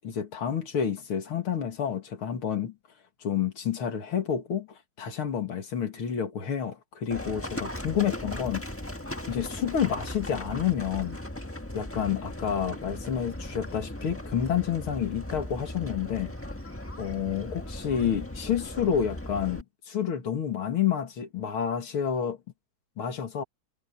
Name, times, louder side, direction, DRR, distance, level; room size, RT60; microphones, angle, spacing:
voice 1, 0.0-2.7 3.2-8.6 9.3-11.2 11.7-16.3 17.0-22.4 23.0-23.4, left 8 dB, 90° left, 3.0 m, -29 dB
Livestock farm animals working animals, 7.1-19.6, left 1 dB, 10° left, 1.2 m, -38 dB
omnidirectional pair, 2.3 m